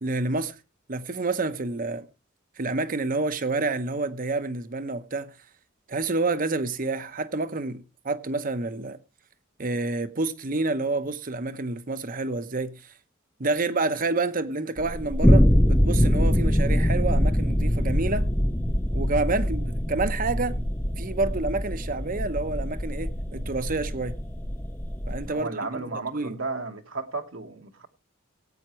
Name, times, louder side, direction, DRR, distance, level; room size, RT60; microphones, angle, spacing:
voice 1, 0.0-0.6 0.9-2.1 2.6-5.3 5.9-9.0 9.6-12.9 13.4-18.3 18.9-20.6 21.0-24.2 25.1-25.8 26.1-26.4, right 3 dB, 45° right, 0.9 m, -28 dB
sound 1, 14.8-25.3, equal, 10° left, 0.7 m, -23 dB
voice 2, 25.3-27.9, right 3 dB, 70° right, 1.4 m, -33 dB
18.5 x 8.7 x 3.1 m
head